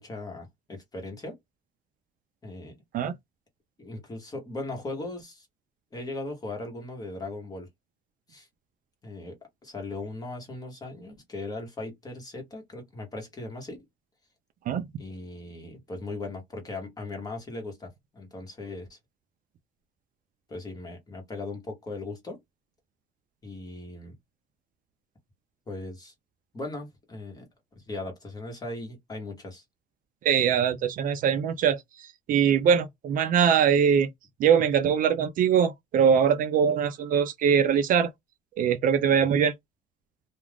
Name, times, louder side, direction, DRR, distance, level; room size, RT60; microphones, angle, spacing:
voice 1, 0.0-1.4 2.4-2.8 3.8-5.5 5.9-7.7 8.3-8.5 9.0-13.8 15.0-19.0 20.5-22.4 23.4-24.1 25.7-26.1 26.5-27.5 27.7-29.6, left 2 dB, 20° left, 1.1 m, -38 dB
voice 2, 30.2-34.1 34.4-38.1 38.6-39.5, right 7 dB, 50° right, 0.4 m, -22 dB
2.3 x 2.3 x 3.3 m
cardioid pair, 160°, 18 cm